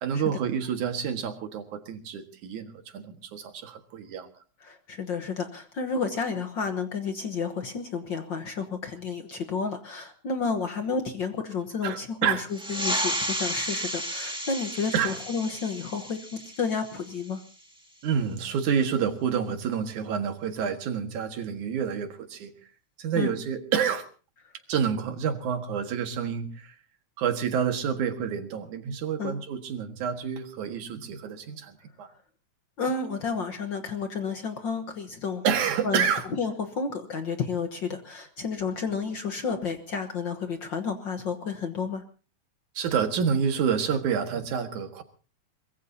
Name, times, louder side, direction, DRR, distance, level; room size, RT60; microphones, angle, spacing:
voice 1, 0.0-4.3 11.8-12.4 14.9-15.2 18.0-22.7 23.0-24.1 24.7-26.8 27.2-32.1 35.4-36.3 42.7-45.0, right 7 dB, 85° right, 7 dB, 3.2 m, -28 dB
voice 2, 4.6-17.4 23.1-23.3 29.2-29.4 32.8-35.4 35.8-36.0 36.4-42.0, left 5 dB, 55° left, 7 dB, 1.5 m, -31 dB
sound 1, 12.5-17.6, equal, ahead, 1.5 m, -33 dB
23.5 x 21.0 x 2.8 m, 0.37 s
omnidirectional pair, 3.4 m